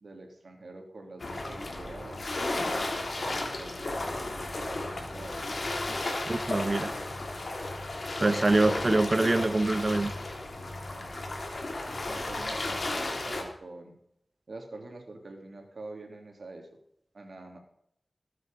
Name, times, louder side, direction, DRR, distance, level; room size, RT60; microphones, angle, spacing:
voice 1, 0.0-2.2 2.8-5.5 10.9-11.7 12.1-13.9 14.5-16.8 17.1-17.6, right 2 dB, 70° right, 3 dB, 3.0 m, -46 dB
sound 1, 1.2-13.4, left 2 dB, 60° left, 3.0 m, -34 dB
voice 2, 6.3-6.9 8.2-10.1, right 2 dB, 45° right, 12 dB, 1.1 m, -25 dB
19.5 x 8.1 x 5.3 m, 0.72 s
cardioid pair, 50°, 0 cm